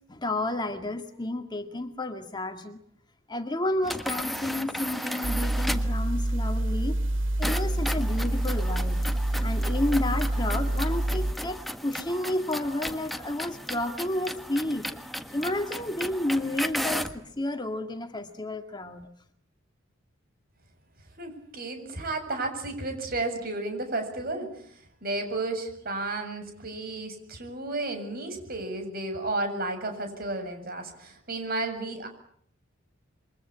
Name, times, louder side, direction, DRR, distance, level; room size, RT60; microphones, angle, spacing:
voice 1, 0.1-2.8 3.3-7.0 7.4-9.0 9.4-14.9 15.3-19.1, left 1 dB, 20° left, 6 dB, 1.9 m, -31 dB
sound 1, 3.8-6.0 7.4-17.2, equal, ahead, 1.4 m, -35 dB
sound 2, 5.2-11.3, right 1 dB, 65° right, 2.5 m, -27 dB
voice 2, 21.2-32.1, right 2 dB, 45° right, 6 dB, 7.4 m, -33 dB
28.0 x 24.0 x 8.7 m, 0.65 s
head